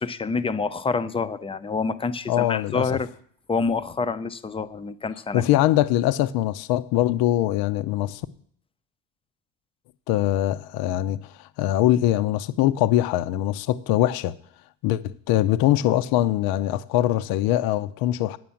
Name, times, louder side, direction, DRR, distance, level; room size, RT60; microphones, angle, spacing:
voice 1, 0.0-3.1 3.5-5.4, left 4 dB, 15° left, 0.6 m, -27 dB
voice 2, 2.3-2.8 5.3-8.2 10.1-14.3 14.8-18.4, left 13 dB, 65° left, 0.7 m, -22 dB
9.6 x 7.7 x 7.1 m
cardioid pair, 120°, 39 cm